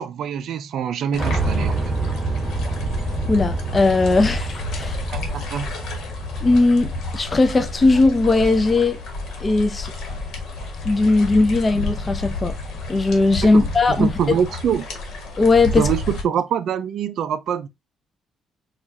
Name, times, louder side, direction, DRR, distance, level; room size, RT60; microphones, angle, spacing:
voice 1, 0.0-1.9 5.1-5.7 13.4-14.9 15.8-17.7, right 8 dB, 70° right, 0.4 m, -25 dB
sound 1, 1.1-16.2, left 3 dB, 75° left, 1.2 m, -30 dB
Piano, 1.2-9.2, right 3 dB, 25° right, 0.9 m, -28 dB
voice 2, 3.3-5.0 6.4-9.0 9.4-9.9 10.8-12.5 12.9-14.1 15.4-15.9, left 3 dB, 30° left, 0.4 m, -18 dB
4.5 x 2.4 x 2.5 m
cardioid pair, 90°, 0 cm